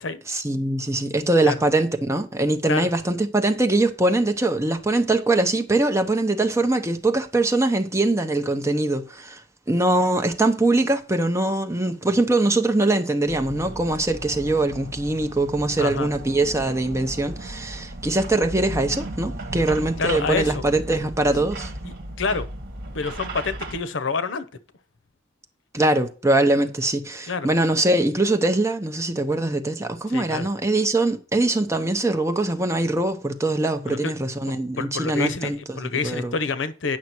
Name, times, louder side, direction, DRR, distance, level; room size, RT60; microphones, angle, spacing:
voice 1, 0.3-9.4 9.7-21.7 25.7-36.4, right 2 dB, 15° right, 1.0 m, -22 dB
sound 1, 13.3-23.8, right 1 dB, 55° right, 1.6 m, -35 dB
voice 2, 15.8-16.1 20.0-20.6 21.8-22.5 22.9-24.5 27.3-27.5 30.1-30.5 33.9-34.1 34.8-37.0, left 4 dB, 85° left, 0.8 m, -27 dB
9.6 x 5.9 x 4.5 m
head